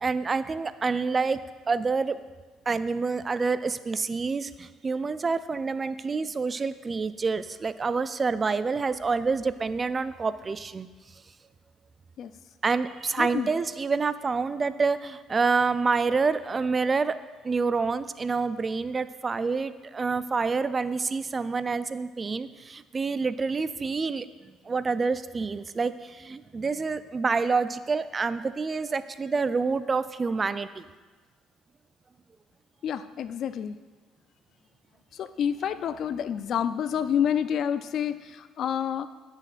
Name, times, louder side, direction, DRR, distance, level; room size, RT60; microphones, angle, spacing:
voice 1, 0.0-1.4 1.7-2.2 2.7-10.9 12.6-17.2 17.4-24.3 24.7-30.8, right 4 dB, 30° right, 14 dB, 0.3 m, -27 dB
voice 2, 13.2-13.5 32.8-33.7 35.2-38.2 38.6-39.1, left 8 dB, 60° left, 12 dB, 0.4 m, -28 dB
13.5 x 6.4 x 2.5 m, 1.3 s
supercardioid pair, 85°, 0 cm